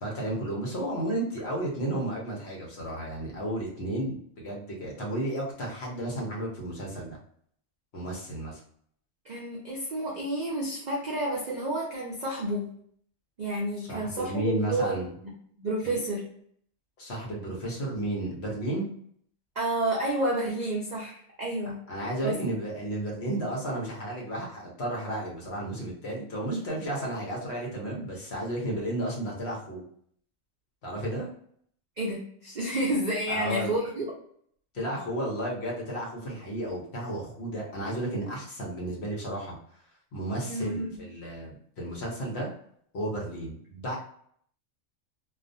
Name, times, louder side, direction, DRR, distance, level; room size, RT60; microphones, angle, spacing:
voice 1, 0.0-7.2 7.9-8.6 13.8-15.1 15.8-16.0 17.0-18.9 21.9-29.8 30.8-31.3 33.3-33.7 34.7-39.6 40.1-42.5 42.9-44.0, right 1 dB, 55° left, -2 dB, 0.9 m, -33 dB
voice 2, 9.2-12.7 13.4-15.0 15.2-15.3 15.6-16.3 19.6-21.8 22.2-22.4 32.0-34.1 40.5-41.0, right 1 dB, 80° right, -3 dB, 0.4 m, -30 dB
2.4 x 2.3 x 2.5 m, 0.64 s
omnidirectional pair, 1.4 m